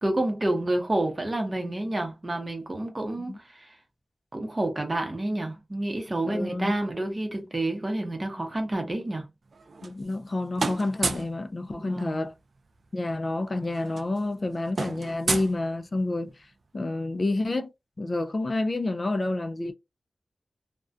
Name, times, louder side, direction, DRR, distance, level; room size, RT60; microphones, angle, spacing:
voice 1, 0.0-3.7 4.3-9.3 11.7-12.3, right 1 dB, 30° right, 0.7 m, -29 dB
voice 2, 6.2-6.7 9.8-12.3 12.9-16.3 16.7-17.7 18.0-19.7, left 2 dB, 40° left, 0.3 m, -29 dB
sound 1, 9.5-10.3 10.6-11.4 12.8-12.9 13.1-13.3 13.6-16.2, right 3 dB, 65° right, 0.3 m, -32 dB
2.3 x 2.1 x 2.5 m
wide cardioid pair, 100°, 0 cm